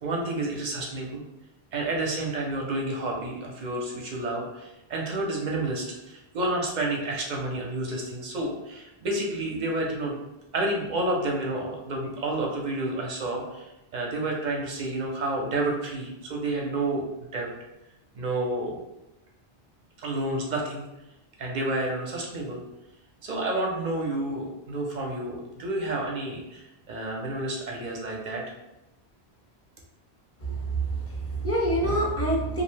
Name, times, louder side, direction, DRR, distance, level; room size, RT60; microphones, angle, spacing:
voice 1, 0.0-1.2 1.7-10.2 10.5-17.0 17.3-17.5 18.1-18.8 20.0-20.8 21.4-22.6 23.2-28.4, right 2 dB, 55° right, -1 dB, 0.6 m, -30 dB
voice 2, 30.4-32.6, right 1 dB, 20° left, -4 dB, 0.4 m, -26 dB
2.5 x 2.0 x 3.1 m, 0.94 s
omnidirectional pair, 1.1 m